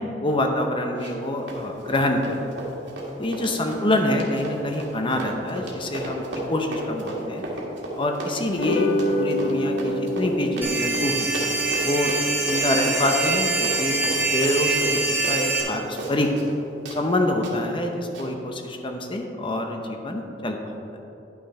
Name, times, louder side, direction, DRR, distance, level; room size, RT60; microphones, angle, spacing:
voice 1, 0.2-2.5 3.2-6.2 6.5-7.4 8.0-11.3 11.8-12.1 12.4-14.0 14.3-16.3 16.9-20.7, left 1 dB, 30° left, 3 dB, 0.8 m, -26 dB
Run, 1.0-1.2 1.5-16.6 16.9-17.0 17.4-17.5 18.1-18.3, right 1 dB, 85° right, 1.8 m, -34 dB
sound 1, 8.5-15.0, left 1 dB, 75° left, 0.5 m, -29 dB
sound 2, 10.6-15.6, right 3 dB, 10° right, 1.4 m, -25 dB
10.5 x 6.1 x 4.3 m, 2.9 s
head